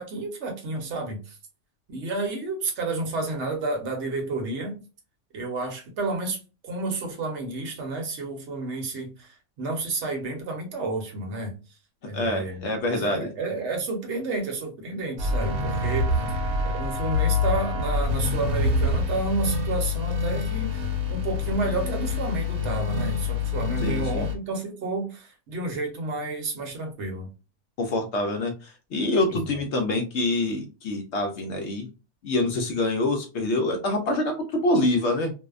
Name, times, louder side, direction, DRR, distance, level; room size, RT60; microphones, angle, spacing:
voice 1, 0.0-1.4 1.9-4.8 5.3-11.5 12.0-16.1 16.6-27.3 29.3-29.4, right 3 dB, 55° right, 2 dB, 1.0 m, -31 dB
voice 2, 12.1-13.3 23.8-24.2 27.8-31.9 32.2-35.3, left 2 dB, 65° left, 3 dB, 0.7 m, -26 dB
sound 1, 15.2-24.3, left 3 dB, 85° right, 1.1 m, -26 dB
2.6 x 2.1 x 2.3 m, 0.32 s
omnidirectional pair, 1.6 m